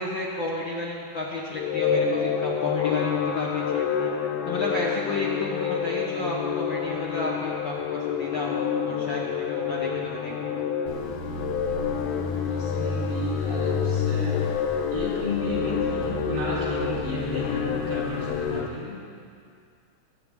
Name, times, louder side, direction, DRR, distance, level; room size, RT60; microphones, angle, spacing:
voice 1, 0.0-4.1 4.4-10.6, left 2 dB, 55° left, -4 dB, 1.4 m, -31 dB
sound 1, 1.5-18.7, left 7 dB, 85° left, 1.2 m, -28 dB
sound 2, 10.9-18.6, left 3 dB, 40° left, 1.1 m, -32 dB
voice 2, 12.5-14.4 14.9-19.0, left 1 dB, 80° right, -7 dB, 5.2 m, -33 dB
21.5 x 9.0 x 3.6 m, 2.3 s
omnidirectional pair, 3.6 m